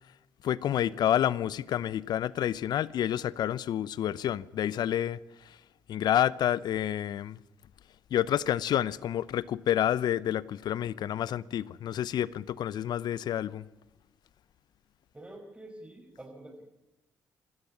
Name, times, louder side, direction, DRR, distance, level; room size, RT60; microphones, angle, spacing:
voice 1, 0.4-5.2 5.9-7.4 8.1-13.6, left 11 dB, 65° left, 0.7 m, -29 dB
voice 2, 15.1-16.6, right 1 dB, 15° right, 5.3 m, -47 dB
26.0 x 13.5 x 9.8 m
hypercardioid pair, 50°, 8 cm